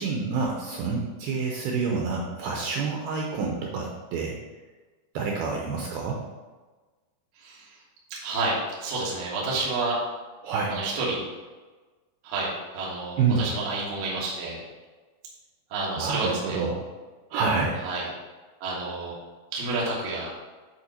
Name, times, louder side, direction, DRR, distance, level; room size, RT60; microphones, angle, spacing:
voice 1, 0.0-4.4 5.1-6.2 10.4-10.8 13.2-13.4 16.0-16.8 17.3-17.8, right 4 dB, 90° right, 0 dB, 2.1 m, -27 dB
voice 2, 7.4-7.8 8.2-10.0 10.7-11.2 12.2-14.6 15.7-16.6 17.8-18.1 18.6-19.2 19.5-20.3, right 2 dB, 65° right, -6 dB, 3.3 m, -29 dB
10.0 x 3.9 x 4.3 m, 1.3 s
omnidirectional pair, 5.3 m